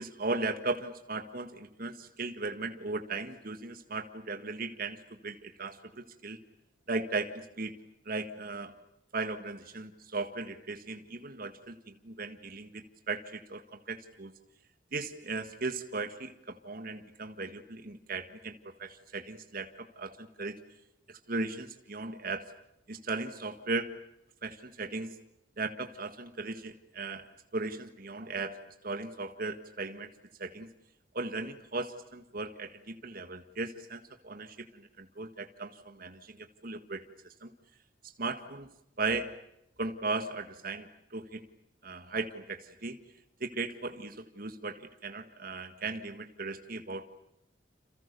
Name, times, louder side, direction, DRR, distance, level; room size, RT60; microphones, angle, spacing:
voice 1, 0.0-6.4 6.9-7.7 8.1-8.7 9.1-14.3 14.9-20.6 21.3-22.5 22.9-23.9 24.4-25.1 25.6-30.1 30.4-30.7 31.1-37.0 37.4-37.5 38.2-38.7 39.0-39.3 39.8-41.4 41.8-43.0 43.4-47.1, right 3 dB, 55° right, 7 dB, 1.8 m, -37 dB
29.0 x 28.0 x 6.9 m, 0.81 s
head